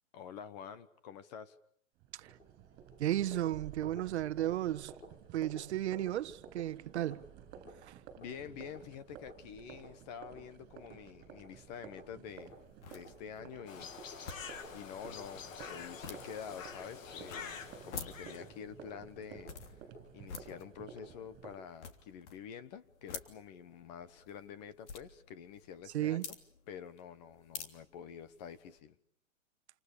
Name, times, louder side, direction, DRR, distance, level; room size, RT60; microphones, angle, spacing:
voice 1, 0.1-1.6 8.2-12.5 12.9-13.9 14.7-19.9 20.1-26.4 26.7-29.0, left 8 dB, 35° left, 1.3 m, -48 dB
sound 1, 2.0-21.6, right 6 dB, 25° right, 7.4 m, -53 dB
voice 2, 3.0-4.9 5.3-7.3 7.8-8.0 25.9-26.3, right 13 dB, 55° right, 1.2 m, -34 dB
sound 2, 12.3-28.8, left 5 dB, 60° left, 3.3 m, -51 dB
sound 3, 13.7-18.5, left 6 dB, 85° left, 2.5 m, -47 dB
28.5 x 27.5 x 6.8 m
hypercardioid pair, 165°, 39 cm